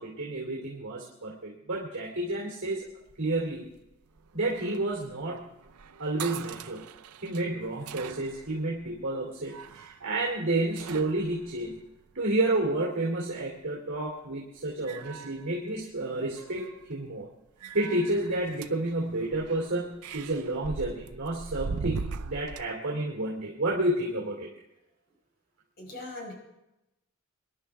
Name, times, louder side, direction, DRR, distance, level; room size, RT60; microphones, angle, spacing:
voice 1, 0.0-2.8 3.2-3.7 4.3-5.4 6.0-6.8 7.2-11.8 12.1-17.3 17.7-19.9 20.1-24.5, right 2 dB, 55° right, -2 dB, 2.8 m, -30 dB
sound 1, 2.9-12.6 13.9-14.3 14.7-16.0 16.3-16.9 17.6-22.6, right 5 dB, 85° right, 0.6 m, -41 dB
voice 2, 25.8-26.3, left 2 dB, 45° left, 0 dB, 5.2 m, -40 dB
24.5 x 11.0 x 3.5 m, 0.93 s
head